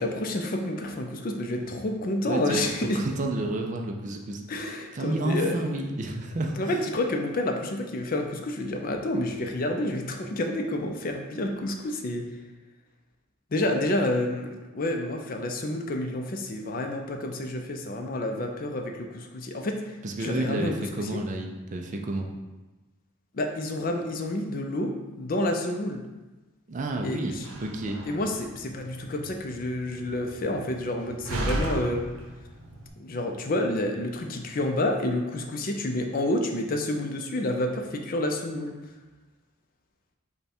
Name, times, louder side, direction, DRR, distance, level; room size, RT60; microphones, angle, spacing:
voice 1, 0.0-3.0 4.5-5.6 6.6-12.3 13.5-21.2 23.3-26.0 27.0-27.5 28.1-32.0 33.0-38.8, left 1 dB, 40° left, 3 dB, 0.4 m, -29 dB
voice 2, 2.2-4.4 4.9-6.6 20.0-22.3 26.7-28.0, right 2 dB, 35° right, 3 dB, 0.4 m, -30 dB
Slam, 27.3-32.9, right 1 dB, 90° right, 0.7 m, -36 dB
5.4 x 2.2 x 4.3 m, 1.1 s
head